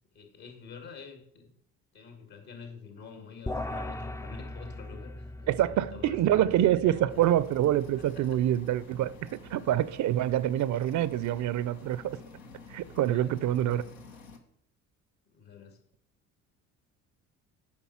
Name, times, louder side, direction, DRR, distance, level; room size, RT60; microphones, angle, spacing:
voice 1, 0.1-1.5 1.9-7.2 8.0-8.4 12.9-13.9 15.3-15.8, left 6 dB, 65° left, 2.4 m, -47 dB
sound 1, 3.5-9.0, left 2 dB, 10° left, 0.3 m, -40 dB
voice 2, 5.5-12.2 12.7-13.8, right 12 dB, 50° right, 0.5 m, -26 dB
sound 2, 7.1-14.4, left 2 dB, 85° left, 1.0 m, -49 dB
8.7 x 5.6 x 5.6 m
hypercardioid pair, 55°, 40 cm